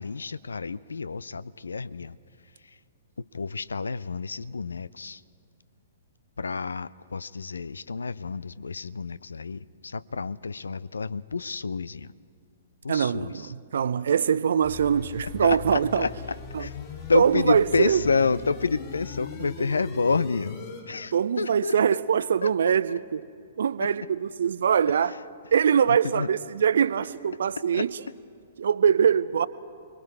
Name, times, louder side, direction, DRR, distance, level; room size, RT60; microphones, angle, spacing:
voice 1, 0.0-2.2 3.2-5.2 6.4-12.1 12.8-13.5 15.4-16.1 16.6-16.7 17.1-20.6 20.8-22.0 22.4-22.5 22.9-23.0 23.8-23.9 25.9-26.3 27.7-27.9, left 4 dB, 75° left, 0.5 m, -29 dB
voice 2, 12.9-16.1 16.5-16.7 17.1-18.0 21.1-23.3 23.6-25.2 25.5-28.0 28.6-29.5, right 7 dB, 60° right, 0.6 m, -23 dB
sound 1, 14.6-20.8, left 5 dB, 40° left, 5.9 m, -40 dB
29.5 x 21.5 x 4.8 m
figure-of-eight pair, 115°, 0 cm